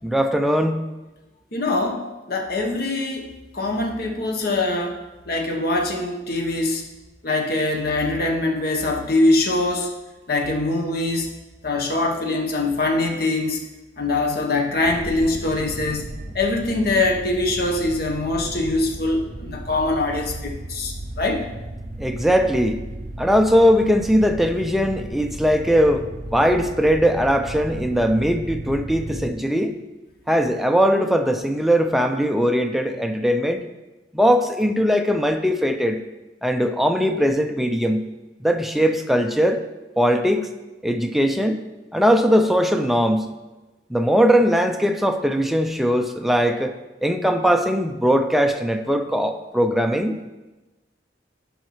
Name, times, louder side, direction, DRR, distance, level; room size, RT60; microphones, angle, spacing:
voice 1, 0.0-0.8 22.0-22.8 23.2-26.0 26.3-29.7 30.3-33.6 34.1-36.0 36.4-38.0 38.4-39.6 40.0-40.5 40.8-41.6 41.9-43.3 43.9-50.2, equal, ahead, 5 dB, 0.4 m, -20 dB
voice 2, 1.5-6.8 7.2-9.9 10.3-11.3 11.6-13.6 14.0-16.1 16.3-21.5, left 2 dB, 60° left, 2 dB, 1.1 m, -23 dB
sound 1, 14.8-29.3, right 1 dB, 45° right, 0.7 m, -35 dB
10.5 x 5.6 x 3.1 m, 1.1 s
head